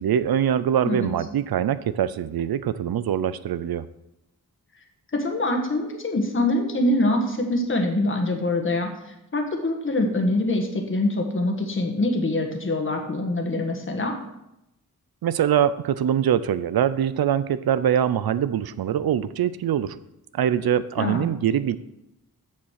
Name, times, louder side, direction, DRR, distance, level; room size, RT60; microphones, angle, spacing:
voice 1, 0.0-3.9 15.2-20.0 20.3-21.8, right 9 dB, 90° right, 15 dB, 0.6 m, -23 dB
voice 2, 5.1-14.2 21.0-21.3, left 1 dB, 35° left, 3 dB, 1.5 m, -24 dB
7.4 x 7.3 x 6.4 m, 0.86 s
wide cardioid pair, 135°, 36 cm